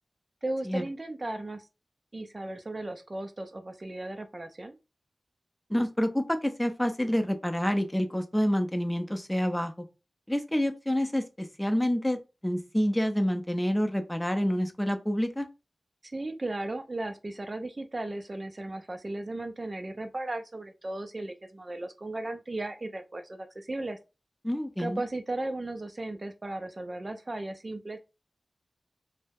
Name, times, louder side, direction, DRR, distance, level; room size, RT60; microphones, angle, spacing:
voice 1, 0.4-1.7 2.1-4.8 16.0-24.0 24.8-28.0, right 2 dB, 45° right, 0.4 m, -36 dB
voice 2, 5.7-9.7 10.3-15.5 24.4-25.0, equal, 10° left, 0.5 m, -28 dB
2.2 x 2.0 x 3.3 m
cardioid pair, 40°, 0 cm